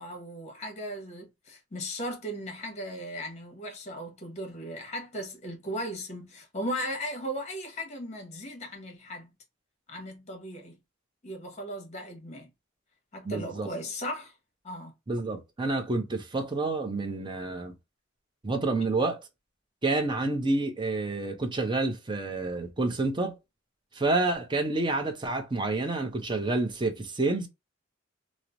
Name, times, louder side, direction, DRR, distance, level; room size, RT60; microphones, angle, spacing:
voice 1, 0.0-9.3 9.9-10.8 11.2-12.5 13.1-14.3 14.6-14.9, equal, 35° left, 0.9 m, -37 dB
voice 2, 13.2-13.7 15.1-17.7 18.4-19.2 19.8-23.4 23.9-27.5, right 2 dB, 20° right, 0.5 m, -28 dB
3.0 x 2.0 x 2.5 m
head